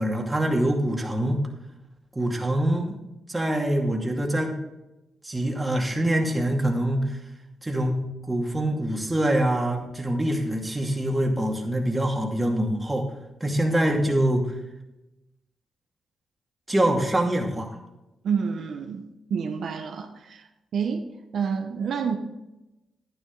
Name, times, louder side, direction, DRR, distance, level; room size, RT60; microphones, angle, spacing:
voice 1, 0.0-1.4 2.1-3.0 3.3-4.5 5.2-7.2 7.6-13.1 13.4-14.4 16.7-17.7, right 1 dB, 15° right, 1 dB, 2.4 m, -24 dB
voice 2, 18.2-19.0 19.3-21.1 21.3-22.2, right 6 dB, 70° right, 4 dB, 0.9 m, -28 dB
11.0 x 10.0 x 4.0 m, 0.97 s
cardioid pair, 60°, 0 cm